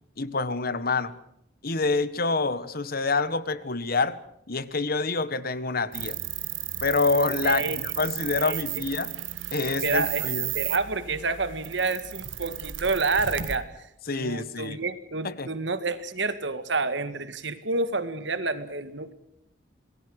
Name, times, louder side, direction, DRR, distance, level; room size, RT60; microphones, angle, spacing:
voice 1, 0.2-1.1 1.6-4.2 4.5-6.2 6.8-9.1 9.5-10.5 14.1-14.8 15.2-15.5, left 3 dB, 50° left, 15 dB, 1.4 m, -27 dB
sound 1, 5.9-13.6, right 12 dB, 85° right, 1.8 m, -34 dB
voice 2, 7.4-7.8 8.4-8.6 9.8-10.3 10.5-13.7 14.1-19.1, right 3 dB, 65° right, 12 dB, 2.0 m, -28 dB
27.0 x 20.0 x 6.5 m, 0.79 s
head